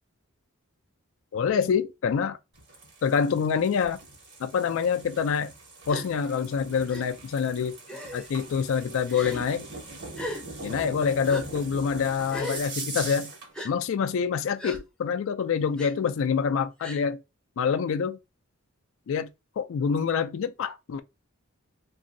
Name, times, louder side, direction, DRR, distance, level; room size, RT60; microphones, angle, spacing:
voice 1, 1.3-2.4 3.0-4.0 4.4-5.5 5.9-7.8 8.1-9.6 10.6-13.3 13.6-17.2 17.6-18.2 19.1-19.3 19.6-21.0, left 6 dB, 65° left, 0.3 m, -26 dB
sound 1, 2.5-13.5, right 3 dB, 55° right, 1.3 m, -41 dB
Gasp, 5.9-6.1 6.9-7.0 7.9-8.3 9.1-9.4 10.1-10.4 11.3-11.4 12.3-12.6 13.5-13.7 14.6-14.8 15.8-15.9 16.8-17.0, equal, 5° left, 0.6 m, -36 dB
2.9 x 2.7 x 2.6 m
head